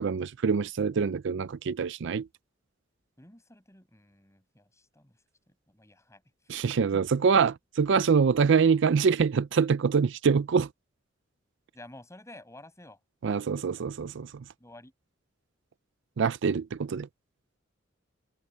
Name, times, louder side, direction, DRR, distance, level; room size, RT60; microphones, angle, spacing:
voice 1, 0.0-2.3 6.5-10.7 13.2-14.4 16.2-17.1, right 5 dB, 65° right, 0.4 m, -25 dB
voice 2, 3.2-5.2 5.5-6.2 6.9-7.1 11.7-13.4 14.6-14.9, left 1 dB, 15° left, 7.4 m, -51 dB
head